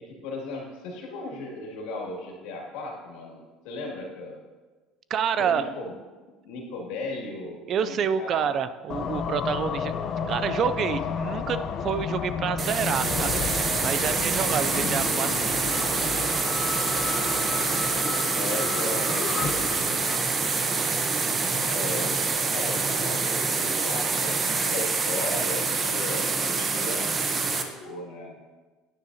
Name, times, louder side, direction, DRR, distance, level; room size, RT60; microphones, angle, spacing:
voice 1, 0.2-4.4 5.4-5.9 6.4-8.5 14.4-14.7 18.3-19.6 21.6-27.1 27.3-28.4, left 2 dB, 75° left, -1 dB, 2.3 m, -36 dB
voice 2, 5.1-5.7 7.7-10.0 10.3-13.6 13.8-15.8, right 7 dB, 45° right, 13 dB, 0.4 m, -28 dB
sound 1, 8.9-20.9, left 7 dB, 45° left, 0.6 m, -32 dB
sound 2, 12.6-27.6, right 4 dB, 30° right, 0.9 m, -26 dB
9.8 x 9.1 x 2.8 m, 1.3 s
supercardioid pair, 110°, 0 cm